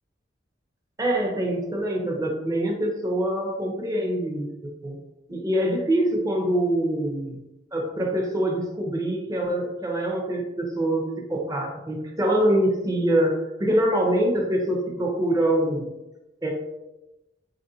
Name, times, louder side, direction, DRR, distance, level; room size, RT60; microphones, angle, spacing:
voice 1, 1.0-5.0 5.3-7.4 7.7-15.9 16.4-16.5, right 1 dB, 20° right, 0 dB, 0.6 m, -24 dB
4.5 x 2.5 x 2.7 m, 0.95 s
head